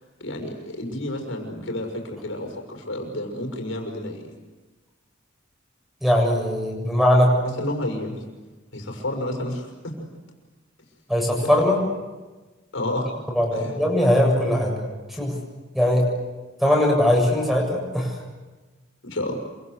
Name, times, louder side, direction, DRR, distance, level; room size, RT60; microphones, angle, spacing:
voice 1, 0.2-4.2 7.6-8.2 8.7-10.0 11.3-11.6 12.7-13.1 13.5-13.8 19.0-19.3, left 1 dB, 80° left, 2 dB, 6.2 m, -30 dB
voice 2, 6.0-7.3 11.1-11.8 13.3-14.8 15.2-15.3 15.7-16.1 16.6-18.1, left 1 dB, ahead, 0 dB, 7.4 m, -20 dB
28.0 x 25.0 x 8.2 m, 1.2 s
head